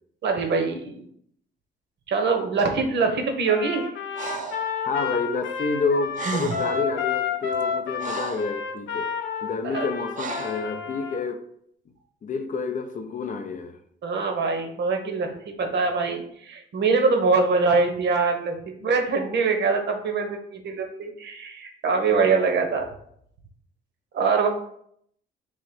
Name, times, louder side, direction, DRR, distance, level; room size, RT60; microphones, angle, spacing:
voice 1, 0.2-1.0 2.1-3.9 9.6-9.8 14.0-22.9 24.1-24.5, right 4 dB, 60° right, 1.0 m, -23 dB
Trumpet, 3.5-11.2, left 7 dB, 85° left, 0.6 m, -30 dB
Breathing, 4.2-4.7 5.9-6.0 6.1-6.8 7.5-8.6 10.1-10.7, right 5 dB, 40° right, 0.5 m, -32 dB
voice 2, 4.8-9.1 9.4-11.5 12.2-13.8, left 4 dB, 40° left, 0.5 m, -29 dB
3.7 x 3.0 x 4.4 m
cardioid pair, 90°, 20 cm